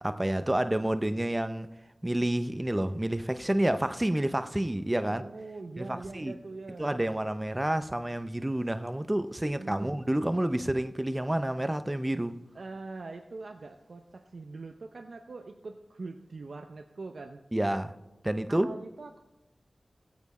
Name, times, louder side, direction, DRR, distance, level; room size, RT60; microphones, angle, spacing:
voice 1, 0.0-1.7 2.0-5.3 5.8-6.3 6.8-12.4 17.5-17.9 18.2-18.7, right 1 dB, 20° right, 0.6 m, -29 dB
voice 2, 5.0-7.0 9.6-10.1 12.5-17.4 18.5-19.2, right 3 dB, 75° right, 0.6 m, -43 dB
16.0 x 8.3 x 4.2 m
wide cardioid pair, 60°, 0 cm